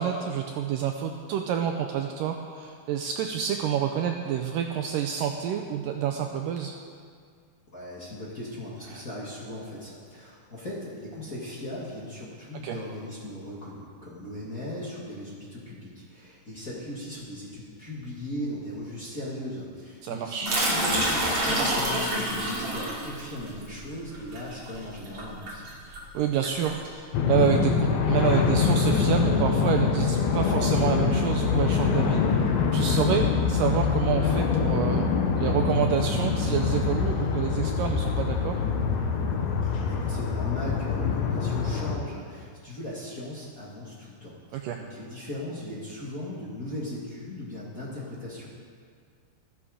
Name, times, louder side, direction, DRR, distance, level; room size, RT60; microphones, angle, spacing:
voice 1, 0.0-6.7 8.9-9.0 12.6-12.8 20.0-20.5 25.9-35.1 35.4-38.6 44.5-44.8, right 9 dB, 90° right, 4 dB, 1.9 m, -28 dB
voice 2, 7.7-25.8 39.9-48.5, left 1 dB, 30° left, -6 dB, 1.8 m, -38 dB
sound 1, 20.5-26.9, right 1 dB, 45° right, 3.9 m, -28 dB
sound 2, 27.1-42.0, left 5 dB, 75° left, 1.6 m, -24 dB
14.0 x 14.0 x 5.1 m, 2.1 s
omnidirectional pair, 4.6 m